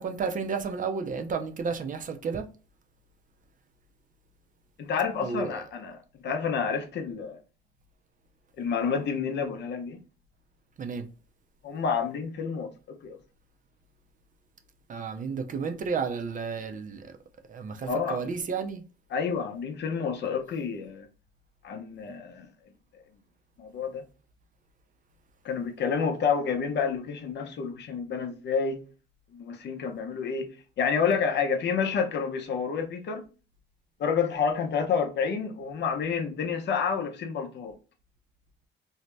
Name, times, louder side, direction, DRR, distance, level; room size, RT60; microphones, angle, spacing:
voice 1, 0.0-2.4 5.2-5.6 10.8-11.0 14.9-17.0 17.5-18.8, right 5 dB, 40° right, 0.5 m, -32 dB
voice 2, 4.8-7.4 8.6-10.0 11.6-13.2 17.8-18.2 19.1-21.1 21.6-22.5 23.6-24.0 25.4-28.8 29.3-30.5 30.8-33.2 34.0-37.7, left 6 dB, 60° left, 0.6 m, -29 dB
2.7 x 2.1 x 3.1 m
cardioid pair, 90°, 20 cm